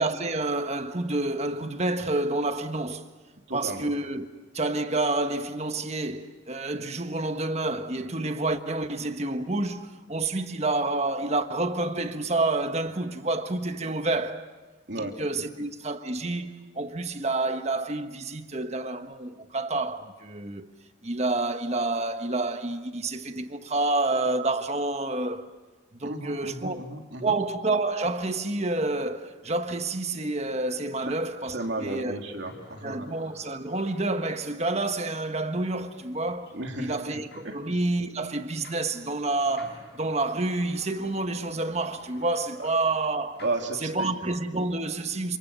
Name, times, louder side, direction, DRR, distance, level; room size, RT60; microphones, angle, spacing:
voice 1, 0.0-3.0 3.5-4.3 4.5-14.5 15.0-20.7 21.0-25.6 26.0-26.9 27.2-32.1 32.8-43.4 43.8-45.4, right 2 dB, 35° right, 1.4 m, -29 dB
voice 2, 3.5-3.9 14.9-15.5 26.0-27.4 31.0-31.1 31.4-33.1 36.5-37.2 37.4-37.6 42.6-42.7 43.4-44.1, right 2 dB, 70° right, 3.0 m, -34 dB
sound 1, 31.0-43.5, left 2 dB, 60° left, 6.8 m, -53 dB
29.0 x 28.0 x 7.0 m
head